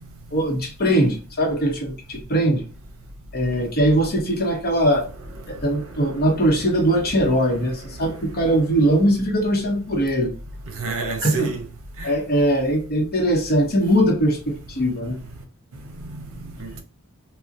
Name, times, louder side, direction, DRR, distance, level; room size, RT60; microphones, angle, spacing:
voice 1, 0.3-2.6 3.3-5.1 5.5-10.3 11.2-11.5 12.0-15.2, right 1 dB, 45° left, 0.8 m, -21 dB
voice 2, 5.7-6.4 10.7-11.6 12.0-12.1 16.1-16.2 16.6-16.8, right 4 dB, 65° right, 0.7 m, -30 dB
3.7 x 2.1 x 2.5 m
head